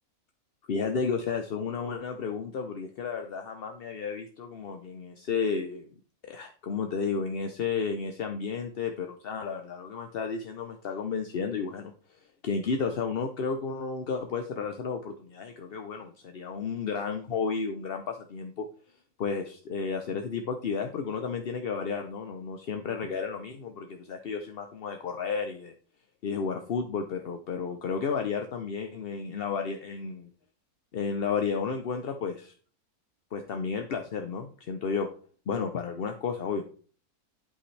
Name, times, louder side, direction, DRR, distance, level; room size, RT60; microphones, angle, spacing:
voice 1, 0.7-5.9 6.2-11.9 12.4-18.7 19.2-25.7 26.2-30.3 30.9-32.5 33.3-35.1 35.5-36.6, left 5 dB, 50° left, 5 dB, 0.8 m, -32 dB
11.5 x 5.5 x 3.2 m, 0.43 s
omnidirectional pair, 1.6 m